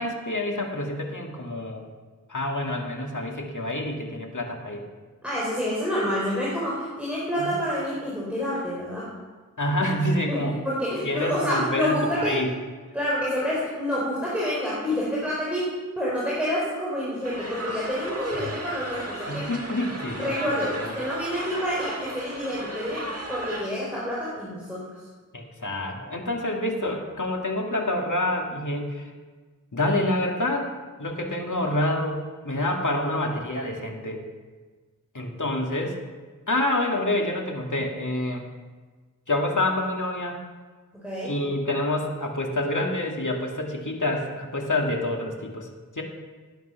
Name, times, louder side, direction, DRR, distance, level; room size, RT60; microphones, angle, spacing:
voice 1, 0.0-1.8 2.3-4.9 7.4-7.5 9.6-10.6 11.0-12.5 19.3-20.5 20.7-20.9 25.3-29.1 29.7-30.7 31.0-34.2 35.1-36.0 36.5-38.4 39.3-40.4 41.2-45.7 46.0-46.1, left 1 dB, 70° left, 1 dB, 2.3 m, -27 dB
voice 2, 5.2-9.1 10.3-12.3 12.9-19.5 20.2-24.9 40.9-41.3, equal, 5° right, -7 dB, 4.6 m, -28 dB
sound 1, 17.2-23.6, right 1 dB, 45° right, 1.8 m, -35 dB
18.0 x 9.3 x 5.8 m, 1.4 s
wide cardioid pair, 60°, 32 cm